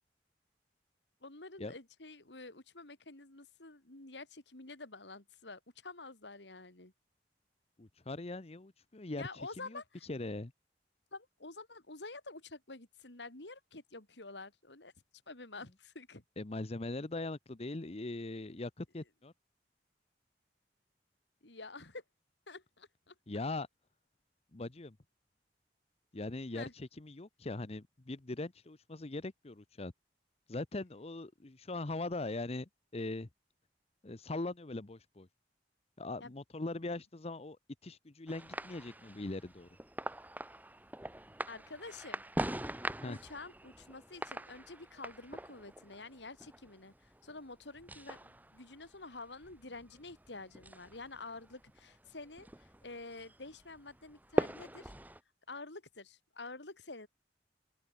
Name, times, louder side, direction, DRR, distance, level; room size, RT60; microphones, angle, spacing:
voice 1, 1.2-6.9 9.2-10.1 11.1-14.9 15.3-16.2 21.4-22.0 22.5-23.2 26.5-26.7 36.2-36.3 41.5-42.2 43.1-54.9 55.5-57.1, left 3 dB, 85° left, 3.6 m, -48 dB
voice 2, 7.8-9.3 9.6-9.8 10.1-10.5 16.4-19.3 23.3-23.7 24.5-25.0 26.1-29.9 30.5-33.3 34.0-35.3 36.0-39.7 43.0-43.2, left 2 dB, 35° left, 0.9 m, -41 dB
sound 1, 38.3-55.2, right 1 dB, 10° right, 2.7 m, -43 dB
open air
head